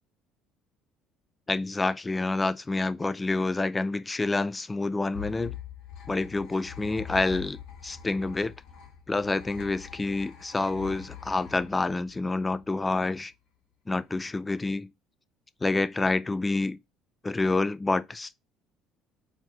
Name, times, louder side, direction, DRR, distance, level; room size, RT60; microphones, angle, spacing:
voice 1, 1.5-5.6 6.1-7.6 7.8-8.5 9.1-13.3 13.9-14.9 15.6-16.8 17.2-18.3, left 3 dB, 15° left, 0.4 m, -28 dB
sound 1, 5.1-12.7, left 9 dB, 65° left, 2.0 m, -44 dB
4.5 x 4.5 x 4.6 m
cardioid pair, 135°, 0 cm